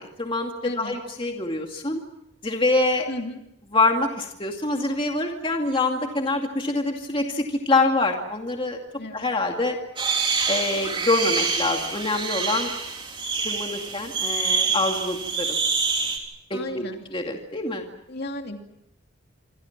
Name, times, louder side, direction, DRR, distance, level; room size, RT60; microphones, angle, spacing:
voice 1, 0.0-2.0 2.4-3.1 3.7-8.8 9.1-9.8 10.5-12.7 13.4-15.6 16.5-16.9 17.1-17.8, left 2 dB, 25° left, 2 dB, 2.3 m, -25 dB
voice 2, 0.6-1.0 3.1-3.4 9.0-9.3 16.5-17.0 18.1-18.8, left 1 dB, 50° left, 4 dB, 2.7 m, -34 dB
sound 1, 10.0-16.2, right 4 dB, 25° right, 3.6 m, -26 dB
27.0 x 26.0 x 6.0 m, 0.81 s
head